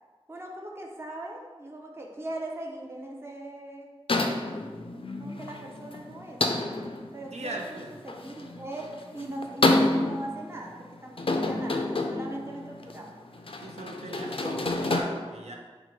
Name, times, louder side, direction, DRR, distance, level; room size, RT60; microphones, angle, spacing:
voice 1, 0.3-3.9 5.2-6.4 7.1-7.8 8.0-13.1, right 1 dB, 25° right, 0 dB, 0.5 m, -39 dB
sound 1, 4.1-15.0, left 2 dB, 55° left, 0.4 m, -29 dB
voice 2, 7.3-7.9 13.6-15.5, right 1 dB, 85° right, 1 dB, 0.6 m, -38 dB
4.4 x 2.5 x 4.5 m, 1.4 s
wide cardioid pair, 50°, 11 cm